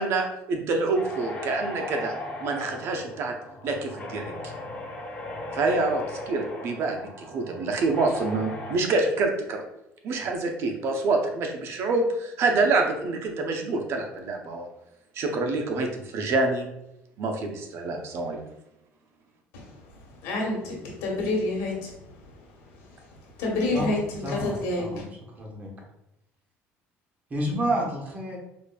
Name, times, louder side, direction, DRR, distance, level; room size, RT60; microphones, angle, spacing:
voice 1, 0.0-2.1 2.4-3.3 3.6-4.3 5.5-9.6 10.0-14.7 15.1-16.7 17.2-18.4, right 3 dB, 60° right, 3 dB, 0.6 m, -26 dB
sound 1, 0.9-8.8, left 2 dB, 20° left, 0.9 m, -37 dB
voice 2, 19.5-21.7 22.3-25.0, left 2 dB, 90° left, -2 dB, 1.3 m, -29 dB
voice 3, 24.2-25.1 25.3-25.7 27.3-28.4, right 1 dB, 35° right, -1 dB, 1.1 m, -29 dB
4.9 x 2.5 x 2.3 m, 0.85 s
cardioid pair, 115°, 5 cm